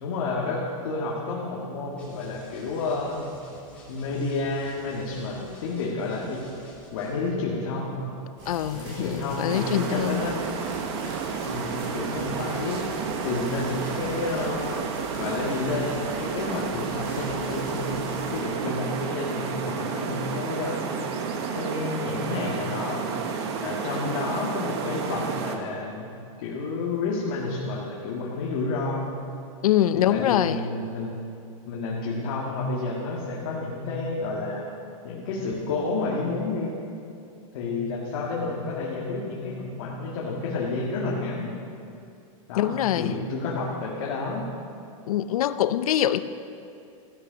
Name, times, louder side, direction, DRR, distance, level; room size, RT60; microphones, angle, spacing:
voice 1, 0.0-3.3 3.9-6.5 6.9-8.1 8.7-10.4 11.5-12.8 13.2-14.9 15.1-20.9 21.5-23.0 23.6-26.1 26.4-29.2 29.9-31.1 31.7-34.7 35.0-36.7 37.5-41.5 42.5-44.5, left 3 dB, 45° left, -4 dB, 2.0 m, -30 dB
sound 1, 2.0-7.3, left 1 dB, 5° left, 2.8 m, -50 dB
sound 2, 8.4-18.4, right 1 dB, 25° right, 3.6 m, -42 dB
voice 2, 8.5-10.2 29.6-30.6 42.6-43.1 45.1-46.2, left 11 dB, 90° left, 13 dB, 0.7 m, -24 dB
sound 3, 9.5-25.6, right 6 dB, 50° right, 1.3 m, -31 dB
14.5 x 11.5 x 6.3 m, 2.5 s
supercardioid pair, 180°, 18 cm